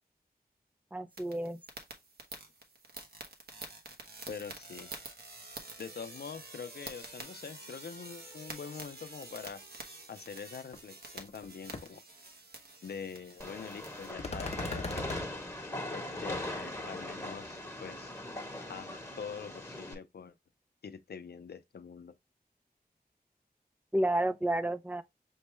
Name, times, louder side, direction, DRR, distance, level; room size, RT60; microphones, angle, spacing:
voice 1, 0.9-1.6 23.9-25.0, right 1 dB, 10° right, 0.5 m, -30 dB
sound 1, 1.1-14.1, right 2 dB, 80° right, 0.9 m, -48 dB
voice 2, 4.3-4.9 5.8-9.6 10.1-12.0 12.8-15.2 15.9-18.1 18.7-20.3 20.8-22.1, left 6 dB, 90° left, 0.5 m, -44 dB
sound 2, 10.7-10.8 11.2-11.5 11.7-11.8 14.2-15.3, left 3 dB, 40° left, 0.6 m, -38 dB
Train, 13.4-19.9, left 1 dB, 15° left, 1.1 m, -40 dB
6.3 x 2.2 x 3.0 m
wide cardioid pair, 85°, 16 cm